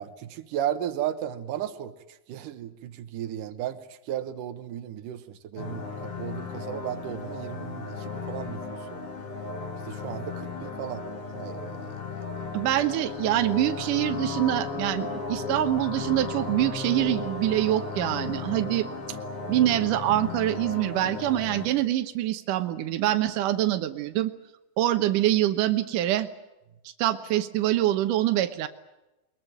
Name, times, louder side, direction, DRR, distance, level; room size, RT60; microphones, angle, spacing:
voice 1, 0.0-1.9 2.3-9.0 9.9-11.0 11.3-12.0, right 11 dB, 70° right, 10 dB, 2.1 m, -35 dB
sound 1, 5.6-21.7, left 4 dB, 35° left, 3.1 m, -35 dB
voice 2, 12.5-18.9 19.5-24.3 24.8-26.3 26.8-28.7, right 13 dB, 85° right, 8 dB, 1.8 m, -25 dB
22.5 x 21.5 x 9.1 m, 0.96 s
omnidirectional pair, 5.2 m